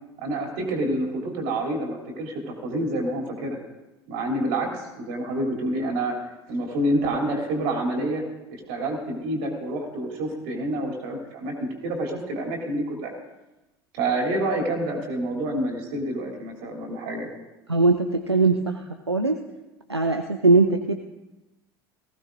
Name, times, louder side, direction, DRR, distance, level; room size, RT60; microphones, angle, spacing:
voice 1, 0.2-3.6 4.1-6.2 6.5-8.2 8.5-11.5 11.8-13.1 13.9-17.3, right 1 dB, 55° right, 1 dB, 3.0 m, -28 dB
voice 2, 17.7-19.4 19.9-20.9, right 3 dB, 90° right, 6 dB, 0.5 m, -21 dB
18.5 x 15.5 x 2.5 m, 1.0 s
figure-of-eight pair, 70°, 14 cm